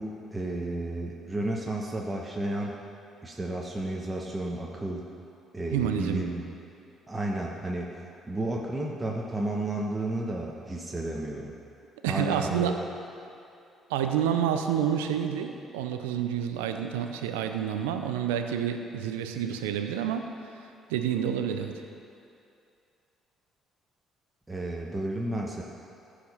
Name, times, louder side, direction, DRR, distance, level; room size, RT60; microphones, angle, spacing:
voice 1, 0.0-2.8 3.2-5.1 5.5-6.4 7.1-7.9 8.3-11.5 12.1-12.8 24.5-25.6, right 1 dB, 20° right, -2 dB, 1.2 m, -32 dB
voice 2, 5.7-6.2 12.0-12.8 13.9-20.3 20.9-21.7, right 9 dB, 85° right, 6 dB, 0.6 m, -28 dB
14.5 x 5.1 x 5.5 m, 2.6 s
hypercardioid pair, 50°, 0 cm